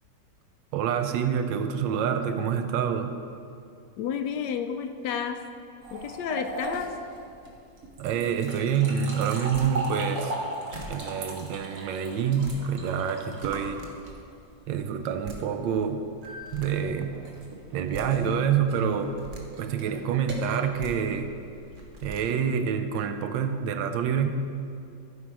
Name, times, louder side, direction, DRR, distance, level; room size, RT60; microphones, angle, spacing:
voice 1, 0.7-3.2 8.0-10.3 10.9-13.9 14.7-16.1 16.5-17.2 17.7-19.2 19.6-21.3 22.0-24.3, right 7 dB, 80° right, 8 dB, 1.3 m, -27 dB
voice 2, 4.0-5.4 5.9-6.9, left 7 dB, 75° left, 7 dB, 1.1 m, -31 dB
sound 1, 5.8-14.4 16.2-21.9, right 2 dB, 55° right, 1.7 m, -38 dB
sound 2, 9.5-9.7 10.4-10.5 10.7-11.0 12.2-12.6 13.3-13.9 14.9-15.0 15.2-15.4 16.2-16.7 17.7-18.1 18.9-19.4 20.6-20.9 21.7-22.2, equal, 35° right, 0.9 m, -42 dB
14.5 x 5.4 x 4.7 m, 2.5 s
omnidirectional pair, 2.1 m